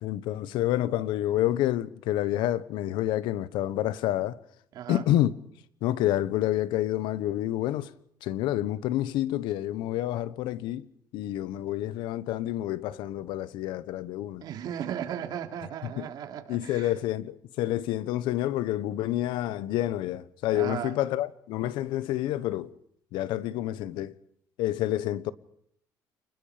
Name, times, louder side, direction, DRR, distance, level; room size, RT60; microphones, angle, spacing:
voice 1, 0.0-4.4 4.9-5.3 5.8-7.9 8.2-10.9 11.1-14.4 15.8-16.1 16.5-22.7 23.1-24.2 24.6-25.3, left 13 dB, 90° left, 1.2 m, -28 dB
voice 2, 14.4-16.9 20.5-20.9, right 9 dB, 60° right, 3.2 m, -36 dB
29.5 x 20.5 x 5.2 m
cardioid pair, 145°, 8 cm